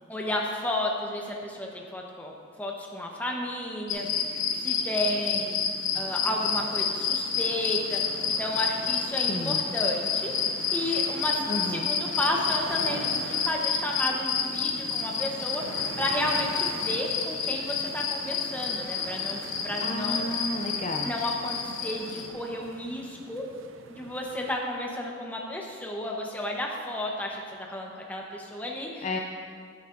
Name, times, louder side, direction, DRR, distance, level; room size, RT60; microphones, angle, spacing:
voice 1, 0.1-2.3 2.6-4.1 4.6-5.6 5.9-8.0 8.4-10.3 10.7-20.3 21.0-23.4 23.9-29.0, left 1 dB, 10° left, -1 dB, 0.9 m, -32 dB
sound 1, 3.9-22.3, left 6 dB, 85° left, 0.9 m, -29 dB
sound 2, 6.3-24.6, right 4 dB, 80° right, 0.5 m, -44 dB
voice 2, 9.3-9.7 11.5-11.9 19.8-21.1 29.0-29.2, left 2 dB, 35° left, 2 dB, 0.4 m, -32 dB
12.5 x 9.2 x 2.6 m, 2.1 s
head